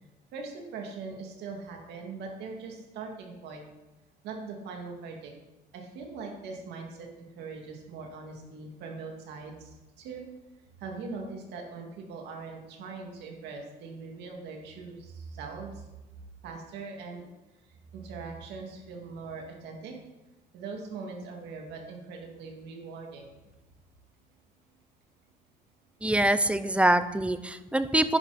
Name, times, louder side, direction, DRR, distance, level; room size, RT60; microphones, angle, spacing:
voice 1, 0.3-3.6 4.2-5.3 5.7-10.2 10.8-15.9 16.4-17.3 17.6-19.9 20.5-23.4, right 4 dB, 80° right, 1 dB, 2.4 m, -41 dB
voice 2, 26.0-28.2, right 1 dB, 5° right, 12 dB, 0.6 m, -24 dB
11.0 x 10.0 x 4.3 m, 1.1 s
cardioid pair, 110°, 17 cm